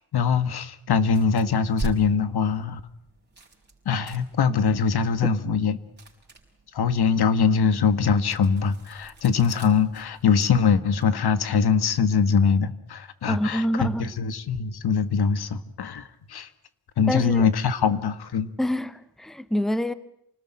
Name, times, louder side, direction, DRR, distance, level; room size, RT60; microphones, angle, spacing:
voice 1, 0.1-2.8 3.9-5.8 6.7-16.5 17.0-18.5, left 6 dB, 75° left, 1.8 m, -22 dB
sound 1, 1.0-11.1, right 3 dB, 25° right, 5.9 m, -43 dB
voice 2, 13.3-14.1 17.1-17.5 18.6-19.9, equal, ahead, 1.1 m, -26 dB
29.0 x 20.0 x 10.0 m
wide cardioid pair, 150°, 39 cm